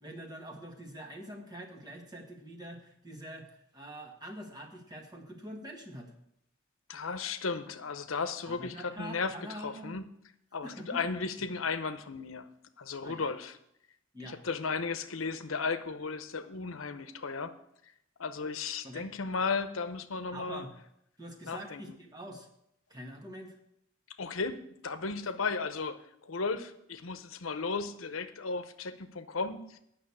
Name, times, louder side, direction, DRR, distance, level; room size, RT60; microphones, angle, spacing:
voice 1, 0.0-6.1 8.4-10.0 10.6-11.0 13.0-13.3 14.1-14.4 18.8-19.1 20.3-20.7 21.2-22.5 22.9-23.6, right 1 dB, 20° right, 1 dB, 1.6 m, -45 dB
voice 2, 6.9-10.0 10.5-12.5 12.8-13.5 14.2-17.5 18.2-20.7 21.5-21.9 24.2-29.8, left 4 dB, 90° left, 10 dB, 0.8 m, -35 dB
8.9 x 6.2 x 8.4 m, 0.75 s
head